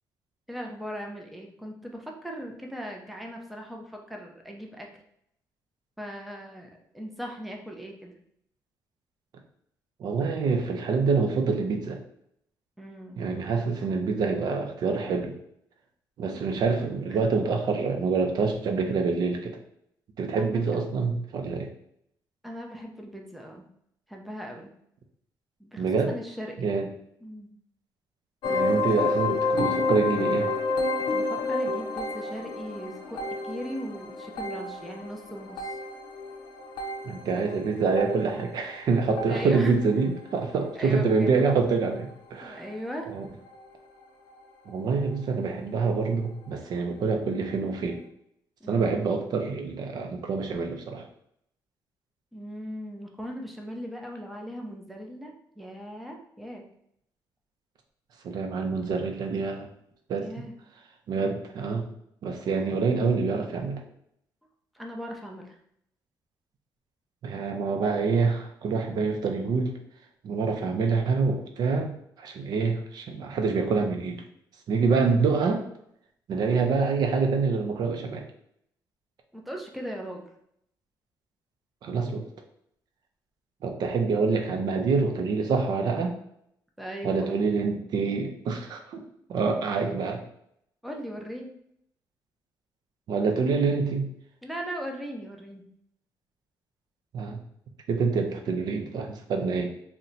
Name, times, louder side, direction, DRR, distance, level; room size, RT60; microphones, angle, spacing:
voice 1, 0.5-4.9 6.0-8.1 12.8-13.2 17.1-17.2 20.4-20.5 20.7-20.8 22.4-23.6 24.1-24.7 25.6-26.7 27.2-27.5 31.1-35.8 39.3-39.8 40.8-41.4 42.4-43.2 48.6-48.9 52.3-56.6 60.2-60.6 64.7-65.6 79.3-80.2 86.8-87.4 89.7-89.9 90.8-91.5 94.4-95.6, equal, ahead, 1 dB, 0.5 m, -38 dB
voice 2, 10.0-12.0 13.2-15.3 16.2-19.6 20.2-21.7 25.8-26.1 26.6-26.9 28.4-30.5 37.0-42.6 43.1-43.3 44.7-48.0 48.7-51.1 58.2-59.7 60.1-60.3 61.1-61.9 62.2-63.8 67.2-69.7 70.2-71.9 72.2-74.2 74.7-75.6 76.3-78.2 81.8-82.2 83.6-86.1 87.0-89.0 89.3-90.2 93.1-94.1 97.1-97.4 97.9-99.7, right 4 dB, 65° right, 3 dB, 0.5 m, -26 dB
sound 1, 28.4-39.9 40.1-40.6 41.2-41.4 41.7-41.8 42.4-42.5, left 2 dB, 75° left, 0.5 m, -30 dB
2.8 x 2.1 x 3.8 m, 0.73 s
cardioid pair, 115°, 8 cm